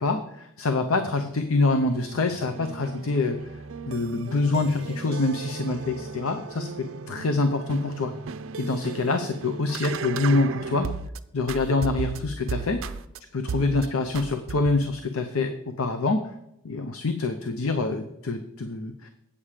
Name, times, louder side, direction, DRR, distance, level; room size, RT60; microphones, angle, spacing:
voice 1, 0.0-8.1 8.6-10.9 11.3-12.8 13.3-16.3 16.6-19.1, left 3 dB, 75° left, 8 dB, 0.6 m, -26 dB
sound 1, 1.4-11.2 11.5-13.2 13.5-13.9 14.1-14.9, right 5 dB, 65° right, 0.4 m, -36 dB
8.5 x 7.3 x 4.9 m, 0.80 s
head